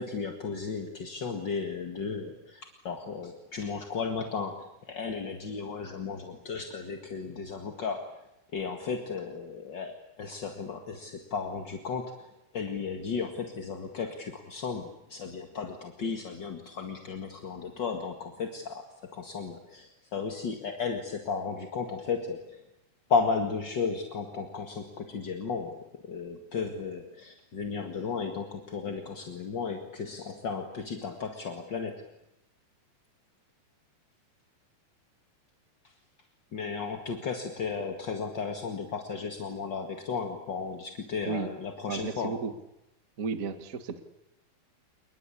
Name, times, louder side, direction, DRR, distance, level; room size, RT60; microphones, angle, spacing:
voice 1, 0.0-8.2 8.5-12.3 12.5-22.6 23.1-32.0 36.5-42.4, left 5 dB, 40° left, 4 dB, 1.9 m, -34 dB
voice 2, 41.9-42.5 43.2-44.0, right 5 dB, 40° right, 9 dB, 1.2 m, -33 dB
29.0 x 21.0 x 8.5 m, 0.89 s
omnidirectional pair, 4.3 m